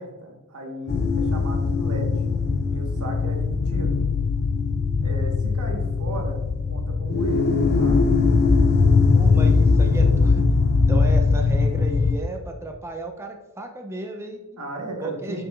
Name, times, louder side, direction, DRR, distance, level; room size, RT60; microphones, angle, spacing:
voice 1, 0.0-2.1 2.7-4.0 5.0-6.4 6.7-7.5 7.8-8.0 14.6-15.5, right 1 dB, 85° right, 1 dB, 1.5 m, -35 dB
sound 1, 0.9-12.2, left 4 dB, 45° left, 0.4 m, -20 dB
voice 2, 9.0-10.4 10.9-14.4 15.0-15.5, right 1 dB, 10° right, 3 dB, 0.5 m, -33 dB
8.1 x 5.9 x 2.4 m, 1.1 s
head